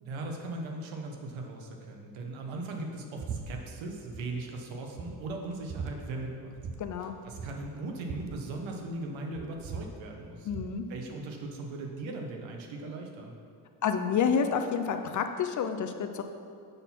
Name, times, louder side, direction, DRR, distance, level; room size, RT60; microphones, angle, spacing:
voice 1, 0.0-6.5 7.0-10.5 10.9-13.3, right 2 dB, 80° right, 2 dB, 1.2 m, -39 dB
sound 1, 3.2-3.4 3.7-4.2 4.6-4.7 5.0-5.9 6.6-6.8 7.0-7.1 7.3-9.0 9.3-10.7, right 6 dB, 35° right, 0.6 m, -40 dB
voice 2, 6.8-7.1 10.5-10.8 13.8-16.2, left 6 dB, 45° left, 7 dB, 0.5 m, -29 dB
6.7 x 4.0 x 5.7 m, 2.3 s
cardioid pair, 115°, 46 cm